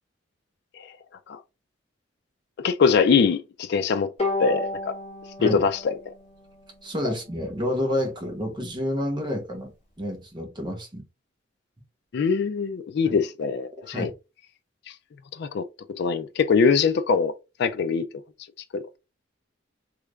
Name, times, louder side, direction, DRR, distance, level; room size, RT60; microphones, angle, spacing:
voice 1, 2.6-4.1 4.4-4.9 5.4-5.8 12.1-14.1 15.4-15.6 16.0-17.3 17.6-18.1 18.7-19.0, left 5 dB, 60° left, 0.3 m, -22 dB
Bowed string instrument, 4.2-7.5, left 2 dB, 30° left, 1.4 m, -33 dB
voice 2, 6.8-11.0 13.0-13.2 13.8-14.1, left 1 dB, 25° right, 0.9 m, -29 dB
3.2 x 3.2 x 2.3 m
head